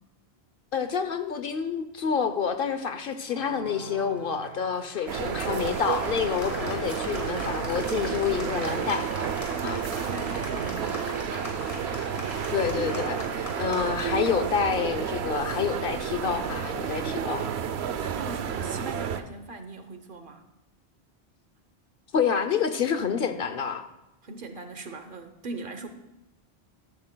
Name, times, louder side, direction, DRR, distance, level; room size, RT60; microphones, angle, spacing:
voice 1, 0.7-9.1 9.6-9.8 12.5-17.5 22.1-23.8, left 7 dB, 60° left, 9 dB, 0.8 m, -28 dB
Applause, 3.2-17.6, left 1 dB, 35° left, 1.7 m, -40 dB
sound 1, 5.1-19.2, right 8 dB, 80° right, 0.9 m, -31 dB
voice 2, 9.5-11.8 17.6-20.4 24.2-25.9, right 3 dB, 55° right, 8 dB, 1.0 m, -40 dB
13.5 x 12.5 x 2.2 m, 0.94 s
omnidirectional pair, 1.1 m